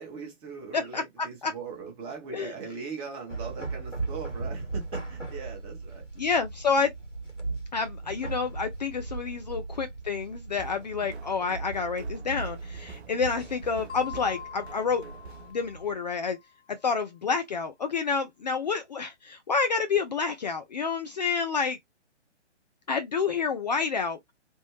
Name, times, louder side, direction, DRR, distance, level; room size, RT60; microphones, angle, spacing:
voice 1, 0.0-6.0, right 5 dB, 15° right, 0.8 m, -40 dB
sound 1, 3.3-15.9, right 3 dB, 90° left, 1.7 m, -38 dB
voice 2, 6.2-6.9 7.7-15.0 15.5-16.4 16.7-21.8 22.9-24.2, left 5 dB, 35° left, 0.4 m, -29 dB
sound 2, 10.5-15.5, right 6 dB, 60° right, 0.7 m, -46 dB
sound 3, 13.9-16.4, left 8 dB, 65° left, 0.9 m, -43 dB
3.5 x 2.0 x 2.9 m
figure-of-eight pair, 130°, 36 cm